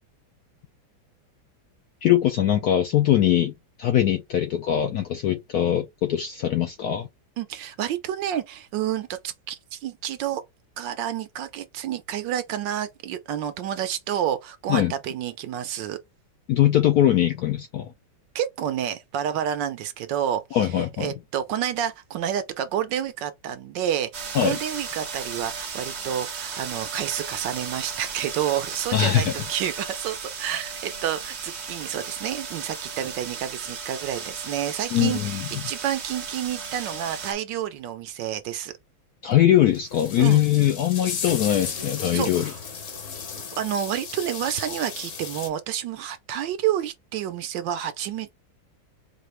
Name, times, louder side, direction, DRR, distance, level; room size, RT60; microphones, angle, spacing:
voice 1, 2.0-3.5 3.8-7.1 14.7-14.9 16.5-17.9 20.5-21.1 24.3-24.6 28.9-29.3 34.9-35.5 39.2-42.5, left 11 dB, 75° left, 0.9 m, -21 dB
voice 2, 7.4-10.4 10.8-16.0 18.3-38.7 40.2-40.4 42.1-42.6 43.6-48.3, right 10 dB, 75° right, 1.2 m, -29 dB
sound 1, 24.1-37.3, right 6 dB, 55° right, 0.7 m, -35 dB
sound 2, 39.3-39.4 39.7-45.5, left 6 dB, 50° left, 1.0 m, -35 dB
4.7 x 2.5 x 3.2 m
omnidirectional pair, 2.2 m